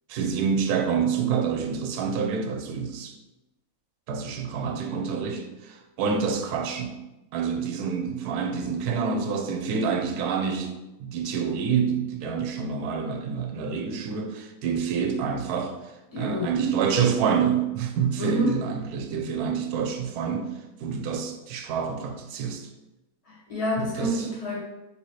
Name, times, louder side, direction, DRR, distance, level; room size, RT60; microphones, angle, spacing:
voice 1, 0.1-3.1 4.1-7.0 7.3-15.7 16.2-20.5 20.8-22.7 23.8-24.3, right 6 dB, 80° right, 4 dB, 1.1 m, -27 dB
voice 2, 16.1-16.5 18.2-18.6 23.2-24.6, equal, 25° left, -7 dB, 1.5 m, -28 dB
4.1 x 3.8 x 3.1 m, 1.0 s
omnidirectional pair, 1.6 m